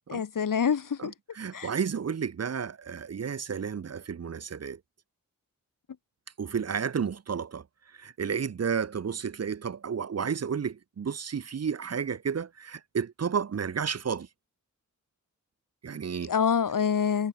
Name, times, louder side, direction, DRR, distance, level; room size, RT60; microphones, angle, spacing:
voice 1, 0.1-1.1 1.5-1.7 16.3-17.3, left 7 dB, 80° left, 1.9 m, -26 dB
voice 2, 1.0-4.8 6.4-7.6 7.9-14.3 15.8-16.3, right 6 dB, 50° right, 0.8 m, -32 dB
wide cardioid pair, 65°, 32 cm